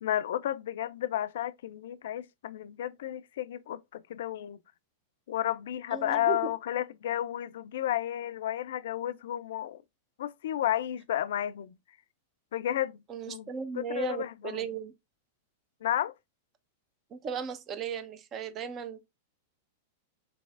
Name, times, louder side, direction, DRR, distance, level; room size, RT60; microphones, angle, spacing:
voice 1, 0.0-4.6 5.3-9.8 10.2-11.8 12.5-13.5 13.7-14.7 15.8-16.1, left 12 dB, 70° left, 0.3 m, -32 dB
voice 2, 5.9-6.5 13.1-14.9 17.1-19.0, right 6 dB, 35° right, 0.7 m, -36 dB
4.0 x 3.1 x 2.4 m
hypercardioid pair, 110°, 0 cm